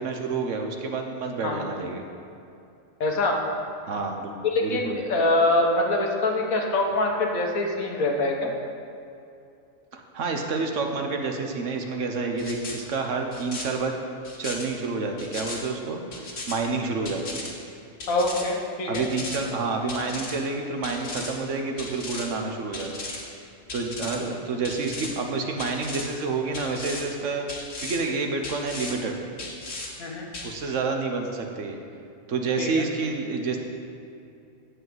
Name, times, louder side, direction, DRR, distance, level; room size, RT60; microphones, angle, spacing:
voice 1, 0.0-2.0 3.9-4.4 4.6-5.0 9.9-13.9 14.4-17.5 18.9-23.1 23.7-29.2 30.4-31.8 32.3-33.6, right 4 dB, 65° right, 3 dB, 1.2 m, -29 dB
voice 2, 3.0-3.4 4.4-8.5 18.1-19.0 30.0-30.2 32.6-32.8, left 2 dB, 80° left, 1 dB, 1.6 m, -24 dB
sound 1, 12.4-12.8 13.3-13.6 14.2-14.7 15.2-15.6 16.1-16.6 17.1-17.5 18.0-18.4 18.9-19.4 19.9-20.4 20.8-21.3 21.8-22.3 22.7-23.2 23.7-24.2 24.6-25.1 25.6-26.1 26.5-27.0 27.5-28.0 28.4-28.9 29.4-29.9 30.3-30.5, left 2 dB, 60° left, 1.8 m, -36 dB
10.5 x 4.9 x 7.8 m, 2.6 s
omnidirectional pair, 1.4 m